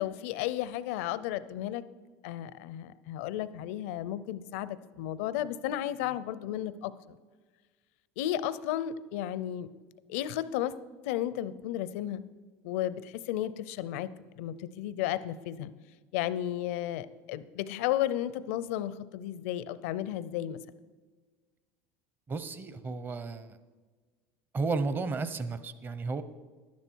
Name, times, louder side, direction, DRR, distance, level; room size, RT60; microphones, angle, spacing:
voice 1, 0.0-1.8 2.2-7.2 8.2-9.7 10.1-10.7 11.0-12.2 12.6-14.1 14.4-15.7 16.1-20.6, left 12 dB, 80° left, 16 dB, 0.5 m, -33 dB
voice 2, 22.3-23.6 24.5-26.2, right 4 dB, 30° right, 12 dB, 0.8 m, -33 dB
12.0 x 10.5 x 4.6 m, 1.4 s
supercardioid pair, 95°, 7 cm